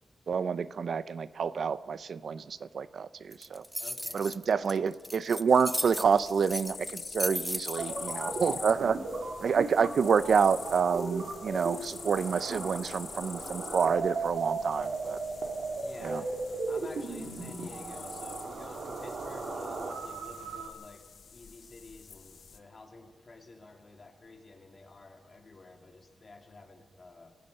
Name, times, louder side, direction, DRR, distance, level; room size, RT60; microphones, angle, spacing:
voice 1, 0.3-3.6 4.1-9.0 9.4-15.2 16.0-16.2, right 6 dB, 70° right, 15 dB, 0.6 m, -28 dB
sound 1, 3.3-8.1, equal, 5° left, 0.5 m, -36 dB
voice 2, 3.8-4.3 15.7-16.3 16.7-21.0 21.3-27.3, left 3 dB, 40° left, 3 dB, 2.9 m, -50 dB
sound 2, 5.5-22.6, left 6 dB, 75° left, 1.2 m, -46 dB
sound 3, 7.7-20.7, right 3 dB, 85° right, 3.3 m, -36 dB
29.5 x 16.0 x 5.5 m, 1.4 s
wide cardioid pair, 120°, 0 cm